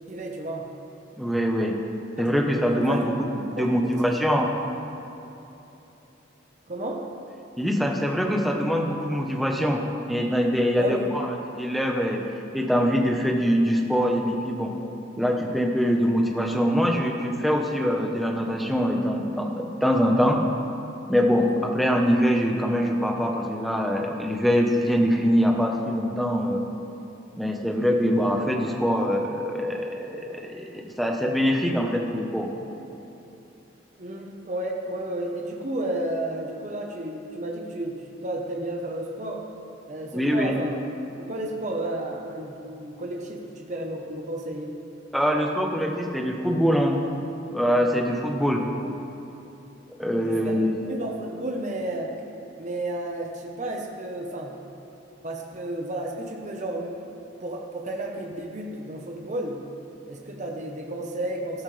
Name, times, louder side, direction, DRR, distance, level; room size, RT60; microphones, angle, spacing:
voice 1, 0.1-0.7 2.8-3.1 3.3-4.1 6.7-7.0 10.8-11.1 34.0-39.5 39.9-40.8 41.2-44.7 47.9-48.0 50.2-50.6 50.9-52.1 52.6-54.5 55.2-57.1 57.4-59.6 60.1-61.6, right 1 dB, 40° right, 0 dB, 1.1 m, -32 dB
voice 2, 1.2-1.7 2.2-4.5 7.6-9.8 10.1-11.3 11.6-12.2 12.5-14.7 15.2-20.4 21.1-26.6 27.4-32.5 40.1-40.6 45.1-47.0 47.5-48.6 50.0-50.9, equal, ahead, 1 dB, 1.1 m, -23 dB
14.0 x 13.0 x 3.4 m, 3.0 s
head